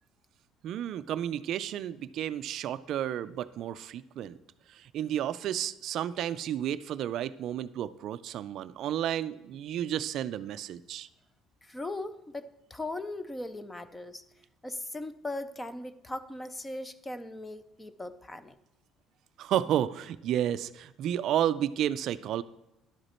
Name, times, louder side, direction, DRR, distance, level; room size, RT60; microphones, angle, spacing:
voice 1, 0.6-4.4 4.7-11.1 19.4-22.4, right 11 dB, 50° right, 14 dB, 0.3 m, -32 dB
voice 2, 11.6-14.2 14.6-18.6, left 2 dB, 10° left, 13 dB, 0.4 m, -39 dB
11.5 x 8.1 x 4.3 m, 0.91 s
cardioid pair, 175°, 0 cm